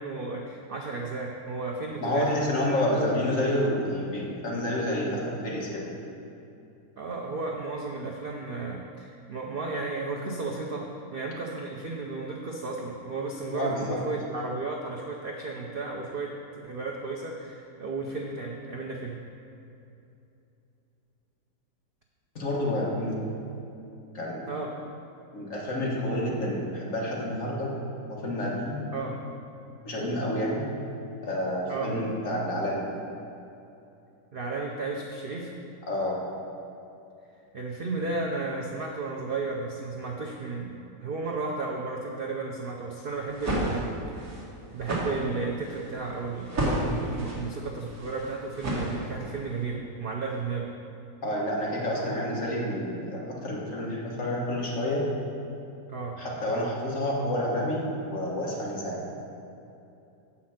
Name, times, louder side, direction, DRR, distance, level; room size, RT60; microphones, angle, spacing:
voice 1, 0.0-2.7 7.0-16.4 16.6-19.2 24.5-24.7 26.3-26.5 28.9-29.2 31.7-32.0 34.3-35.5 37.5-44.4 44.7-50.7 55.9-56.3, right 3 dB, 70° right, 0 dB, 0.5 m, -34 dB
voice 2, 2.0-5.8 13.5-14.0 22.4-23.1 24.1-24.5 25.3-27.7 28.1-28.8 29.8-30.7 31.2-32.9 35.9-36.2 51.2-55.1 56.2-59.0, left 1 dB, 50° left, -4 dB, 1.7 m, -29 dB
sound 1, 43.2-49.4, right 1 dB, 55° right, 2.0 m, -31 dB
7.6 x 5.8 x 5.8 m, 2.8 s
omnidirectional pair, 1.8 m